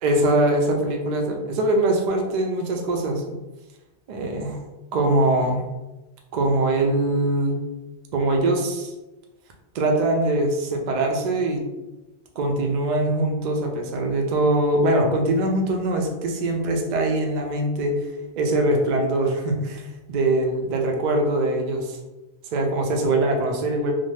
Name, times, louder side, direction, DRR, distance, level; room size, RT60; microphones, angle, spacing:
voice 1, 0.0-3.2 4.1-4.6 4.9-5.6 6.3-7.6 8.1-8.9 9.7-11.6 12.4-17.9 18.4-19.8 20.1-22.0 22.5-23.9, right 1 dB, 55° right, 2 dB, 0.5 m, -22 dB
2.5 x 2.1 x 3.1 m, 1.1 s
omnidirectional pair, 1.2 m